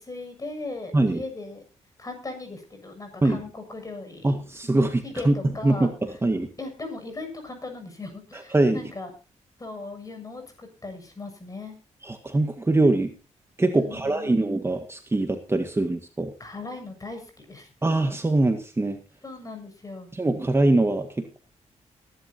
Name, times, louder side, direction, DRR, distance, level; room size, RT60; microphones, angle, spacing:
voice 1, 0.0-1.6 2.0-4.3 5.0-5.9 6.6-9.1 9.6-11.8 13.7-14.4 16.4-17.7 19.2-20.1, left 3 dB, 30° left, 5 dB, 7.2 m, -38 dB
voice 2, 4.2-5.4 5.6-6.5 8.5-8.8 12.0-13.1 13.6-16.3 17.8-19.0 20.1-21.4, right 2 dB, 20° right, 6 dB, 1.7 m, -23 dB
22.0 x 11.5 x 2.9 m, 0.31 s
cardioid pair, 85°, 12 cm